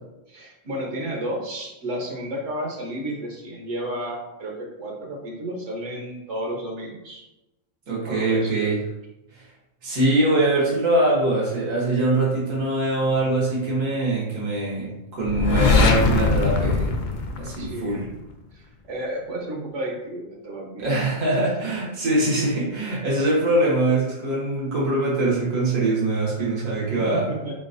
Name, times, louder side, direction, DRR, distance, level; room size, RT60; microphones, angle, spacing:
voice 1, 0.3-7.2 8.0-8.7 17.6-18.1 18.5-20.9 26.9-27.5, right 1 dB, 70° right, 0 dB, 1.1 m, -32 dB
voice 2, 7.9-8.8 9.3-9.4 9.8-17.0 17.4-18.1 20.8-27.3, right 2 dB, 90° right, -6 dB, 1.7 m, -23 dB
sound 1, 15.3-18.1, left 4 dB, 70° left, 0.4 m, -21 dB
4.1 x 3.8 x 2.6 m, 0.96 s
omnidirectional pair, 1.3 m